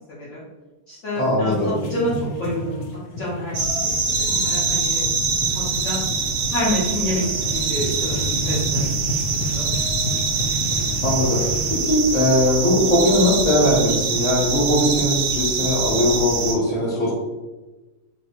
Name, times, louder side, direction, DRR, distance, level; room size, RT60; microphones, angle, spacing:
voice 1, 0.1-0.4 0.9-2.1 2.4-3.6 4.1-5.1 5.5-6.0 6.5-7.2 7.5-8.8 9.5-9.6, left 1 dB, 55° left, -8 dB, 0.8 m, -28 dB
voice 2, 1.1-1.7 8.3-8.4 8.7-8.8 11.0-17.1, left 1 dB, 10° left, -6 dB, 0.6 m, -20 dB
sound 1, 1.5-11.7, equal, 85° left, 0.7 m, -30 dB
sound 2, 3.5-16.6, right 5 dB, 75° right, 0.7 m, -24 dB
3.2 x 2.6 x 2.8 m, 1.2 s
omnidirectional pair, 1.9 m